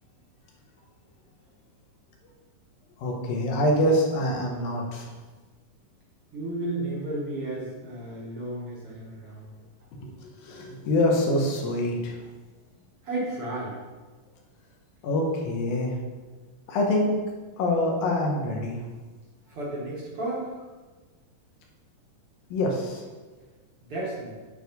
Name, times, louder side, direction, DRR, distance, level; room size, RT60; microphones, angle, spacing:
voice 1, 3.0-5.1 10.0-12.2 15.0-15.9 16.7-17.2 17.6-18.8 22.5-23.0, left 1 dB, 85° left, 0 dB, 3.1 m, -25 dB
voice 2, 6.3-9.5 13.0-13.8 19.5-20.5 23.8-24.3, right 2 dB, 50° right, -5 dB, 2.2 m, -33 dB
9.0 x 4.7 x 5.3 m, 1.3 s
omnidirectional pair, 3.9 m